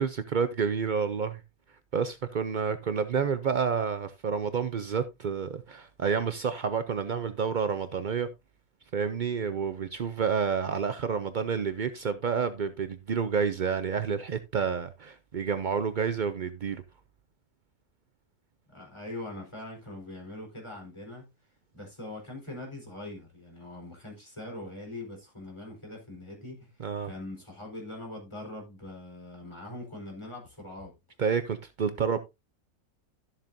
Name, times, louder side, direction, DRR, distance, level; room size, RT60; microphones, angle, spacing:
voice 1, 0.0-1.4 1.9-8.3 8.9-16.8 26.8-27.1 31.2-32.2, right 6 dB, 80° right, 0.4 m, -29 dB
voice 2, 18.7-21.3 21.7-30.9, left 1 dB, 15° left, 4.3 m, -42 dB
13.0 x 7.4 x 2.6 m
omnidirectional pair, 1.7 m